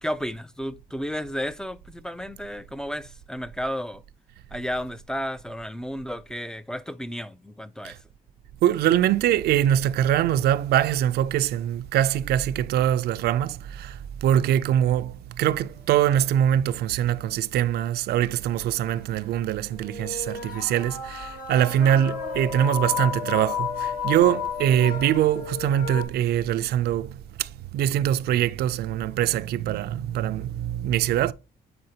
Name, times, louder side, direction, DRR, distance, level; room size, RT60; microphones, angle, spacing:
voice 1, 0.0-4.0 4.5-8.0, equal, 5° left, 0.3 m, -32 dB
voice 2, 8.6-31.3, right 11 dB, 80° right, 0.4 m, -23 dB
sound 1, 18.1-18.2 19.0-19.1 19.7-26.0, left 7 dB, 60° left, 1.7 m, -32 dB
7.8 x 4.7 x 2.8 m
cardioid pair, 125°, 16 cm